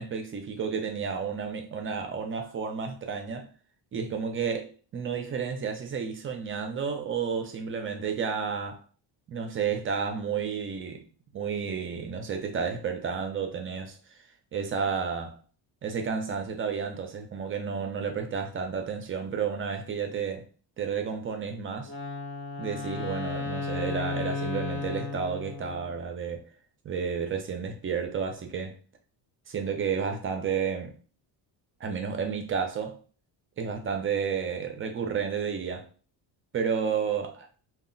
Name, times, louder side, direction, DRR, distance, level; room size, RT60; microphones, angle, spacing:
voice 1, 0.0-3.5 3.9-8.8 9.3-11.0 11.3-14.0 14.5-15.4 15.8-20.5 20.8-21.9 22.6-26.5 26.8-28.8 29.5-31.0 31.8-33.0 33.6-35.9 36.5-37.5, right 6 dB, 30° right, 0.4 m, -31 dB
Wind instrument woodwind instrument, 21.8-26.0, left 4 dB, 25° left, 0.7 m, -34 dB
2.3 x 2.0 x 3.7 m
cardioid pair, 145°, 44 cm